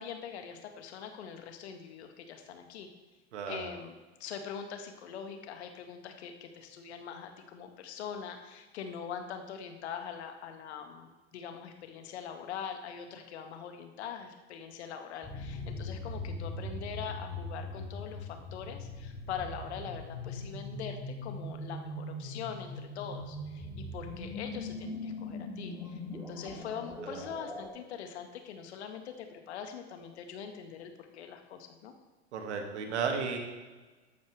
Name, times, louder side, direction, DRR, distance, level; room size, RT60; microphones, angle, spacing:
voice 1, 0.0-2.9 3.5-31.9, left 7 dB, 70° left, 6 dB, 1.9 m, -43 dB
voice 2, 3.3-3.7 27.0-27.2 32.3-33.4, right 5 dB, 75° right, 3 dB, 2.4 m, -34 dB
sound 1, 15.2-27.7, left 2 dB, 10° right, 3.7 m, -41 dB
14.5 x 11.5 x 3.5 m, 1.3 s
hypercardioid pair, 90°, 34 cm